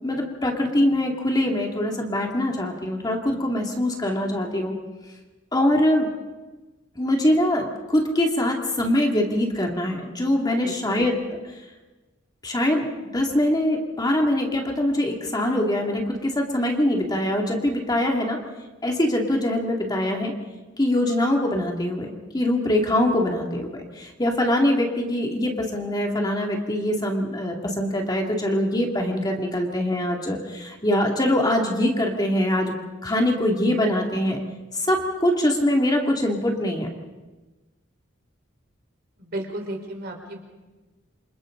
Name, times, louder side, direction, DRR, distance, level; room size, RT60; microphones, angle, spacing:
voice 1, 0.0-4.7 5.5-6.1 7.0-11.2 12.4-18.4 18.8-20.3 20.8-32.7 33.0-34.4 34.7-36.9, left 1 dB, 20° left, 1 dB, 2.4 m, -23 dB
voice 2, 10.6-10.9 39.2-40.4, right 1 dB, 55° right, 1 dB, 4.2 m, -34 dB
28.0 x 26.5 x 3.9 m, 1.2 s
head